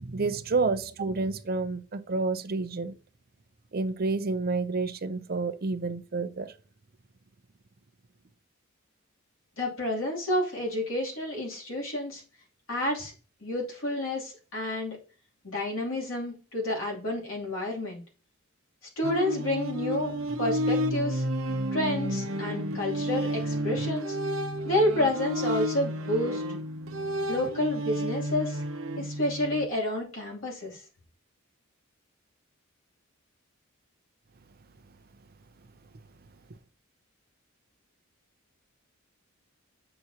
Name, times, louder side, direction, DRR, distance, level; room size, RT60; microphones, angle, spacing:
voice 1, 0.0-2.9 3.7-6.5, right 3 dB, 45° right, 0.5 m, -29 dB
voice 2, 9.6-12.2 12.7-13.1 13.4-15.0 15.4-18.0 19.0-20.1 20.4-21.2 21.7-24.2 24.6-26.4 27.3-28.6 29.0-30.8, left 1 dB, 70° left, 2.9 m, -29 dB
sound 1, 19.0-29.7, equal, 70° right, 0.8 m, -31 dB
7.7 x 5.9 x 2.8 m
head